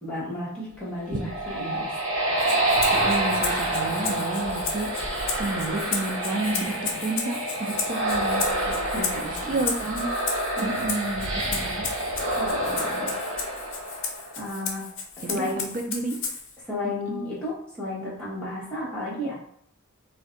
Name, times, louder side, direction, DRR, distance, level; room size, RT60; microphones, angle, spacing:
voice 1, 0.0-1.9 6.5-7.1 8.4-9.6 10.6-10.8 12.4-13.1 14.4-14.9 15.2-15.7 16.6-19.3, left 1 dB, 5° left, -9 dB, 1.1 m, -33 dB
sound 1, 0.9-14.5, right 1 dB, 65° right, 0.9 m, -28 dB
Rattle (instrument), 2.4-16.6, left 5 dB, 60° left, 0.6 m, -34 dB
voice 2, 2.9-4.9 5.4-8.4 9.5-10.1 10.6-11.9 15.2-16.2 17.1-17.2, right 2 dB, 40° right, 4 dB, 0.4 m, -30 dB
2.5 x 2.2 x 3.7 m, 0.65 s
head